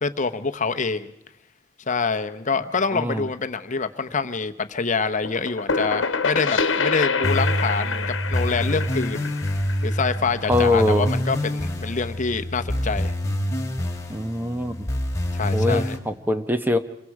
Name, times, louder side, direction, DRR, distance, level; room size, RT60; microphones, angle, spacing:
voice 1, 0.0-1.1 1.9-9.3 9.8-13.1 15.3-16.0, left 4 dB, 40° left, 9 dB, 1.0 m, -26 dB
voice 2, 2.9-3.3 10.5-11.1 14.1-14.7 15.5-16.8, left 1 dB, 10° right, 9 dB, 0.9 m, -23 dB
sound 1, 5.2-10.8, left 4 dB, 75° left, 1.2 m, -26 dB
sound 2, 7.2-16.0, equal, 15° left, 2.9 m, -26 dB
28.0 x 23.0 x 4.8 m, 0.83 s
head